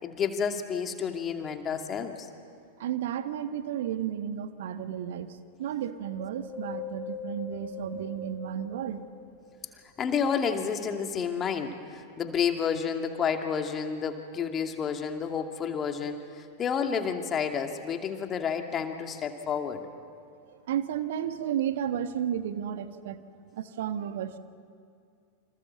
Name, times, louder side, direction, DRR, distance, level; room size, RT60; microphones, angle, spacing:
voice 1, 0.0-2.3 10.0-19.8, left 6 dB, 25° left, 5 dB, 2.5 m, -30 dB
voice 2, 2.8-9.0 20.7-23.2 23.5-24.4, right 10 dB, 55° right, 10 dB, 1.4 m, -33 dB
Wind, 6.0-9.6 10.1-11.3 11.9-12.0, left 4 dB, 10° left, 4.8 m, -42 dB
28.5 x 27.0 x 7.4 m, 2.3 s
figure-of-eight pair, 90°, 0 cm